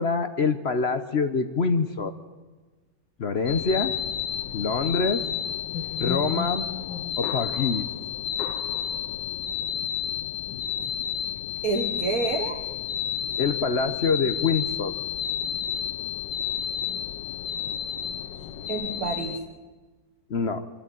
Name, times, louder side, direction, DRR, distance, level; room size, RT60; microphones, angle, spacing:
voice 1, 0.0-2.1 3.2-3.9 4.5-5.2 6.0-6.6 7.2-7.9 13.4-14.9 20.3-20.7, left 4 dB, 50° left, 10 dB, 0.9 m, -25 dB
sound 1, 3.5-19.4, left 9 dB, 85° left, 1.7 m, -31 dB
voice 2, 11.6-12.7 18.4-19.4, right 3 dB, 55° right, 0 dB, 1.8 m, -29 dB
25.0 x 12.5 x 9.3 m, 1.3 s
omnidirectional pair, 1.9 m